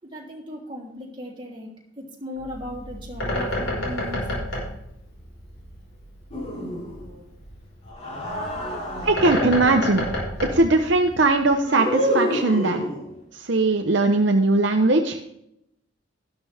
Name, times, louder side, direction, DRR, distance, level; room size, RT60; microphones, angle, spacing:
voice 1, 0.0-1.7 2.0-4.3, left 1 dB, 25° right, -3 dB, 3.2 m, -37 dB
Bird, 2.4-11.5, left 1 dB, 80° left, 5.1 m, -31 dB
sound 1, 6.3-7.1 7.9-9.7 11.6-13.2, equal, 35° left, 4.1 m, -28 dB
voice 2, 9.0-10.0 10.4-12.8 13.3-15.2, right 2 dB, 60° right, 4 dB, 0.8 m, -20 dB
13.0 x 12.0 x 3.5 m, 0.79 s
head